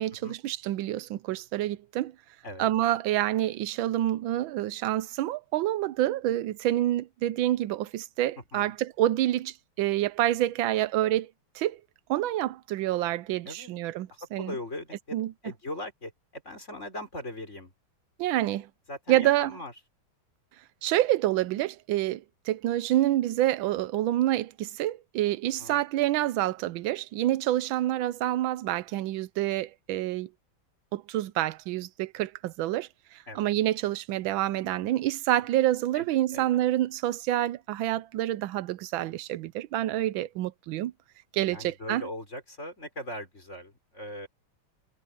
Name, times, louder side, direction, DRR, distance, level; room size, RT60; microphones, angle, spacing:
voice 1, 0.0-2.1 2.6-11.8 12.1-14.5 15.1-15.3 18.2-18.7 19.1-19.5 20.8-30.3 30.9-40.9 41.3-42.0, right 14 dB, 75° right, 1.3 m, -27 dB
voice 2, 8.4-8.7 13.5-13.7 14.1-17.7 18.9-19.7 25.6-25.8 33.3-33.5 35.9-36.1 36.3-36.5 41.5-44.3, left 1 dB, 30° left, 5.9 m, -40 dB
omnidirectional pair, 2.3 m